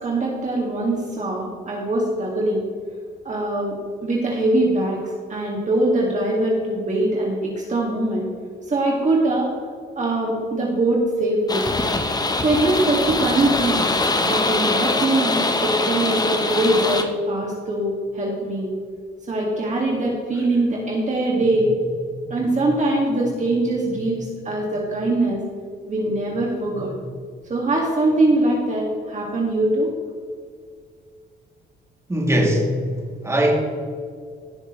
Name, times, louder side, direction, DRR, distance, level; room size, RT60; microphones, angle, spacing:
voice 1, 0.0-2.6 3.2-3.8 4.0-8.3 8.7-9.5 10.0-11.6 12.4-13.8 14.2-18.7 19.3-25.4 25.8-27.1 27.5-29.9, right 2 dB, 40° right, -3 dB, 2.1 m, -22 dB
sound 1, 11.5-17.0, left 2 dB, 20° left, 1.0 m, -22 dB
voice 2, 32.1-32.7 33.2-33.5, right 1 dB, 15° right, -2 dB, 2.8 m, -19 dB
17.0 x 6.5 x 3.2 m, 2.1 s
cardioid pair, 90°, 20 cm